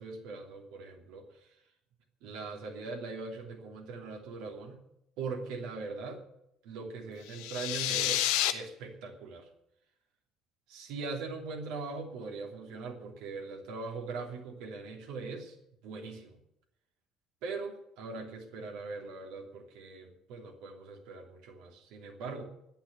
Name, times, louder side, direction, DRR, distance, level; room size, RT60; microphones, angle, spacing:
voice 1, 0.0-1.6 2.2-4.8 5.2-6.2 6.6-8.2 8.5-9.5 10.7-15.5 15.8-16.4 17.4-22.4, right 4 dB, 60° right, 1 dB, 3.0 m, -41 dB
sound 1, 7.3-8.5, left 13 dB, 60° left, 1.0 m, -29 dB
10.5 x 10.5 x 9.6 m, 0.79 s
figure-of-eight pair, 55°, 0 cm